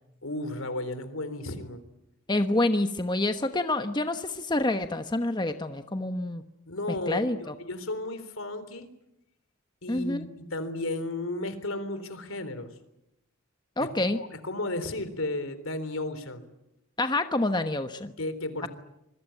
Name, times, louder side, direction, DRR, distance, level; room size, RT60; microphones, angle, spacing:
voice 1, 0.2-1.8 6.7-8.9 9.8-12.7 13.8-13.9 14.1-16.4 18.2-18.7, left 2 dB, 70° left, 13 dB, 3.7 m, -34 dB
voice 2, 2.3-6.4 7.1-7.5 9.9-10.2 13.8-14.2 17.0-18.1, left 2 dB, 20° left, 8 dB, 1.1 m, -27 dB
26.5 x 22.0 x 9.1 m, 0.86 s
head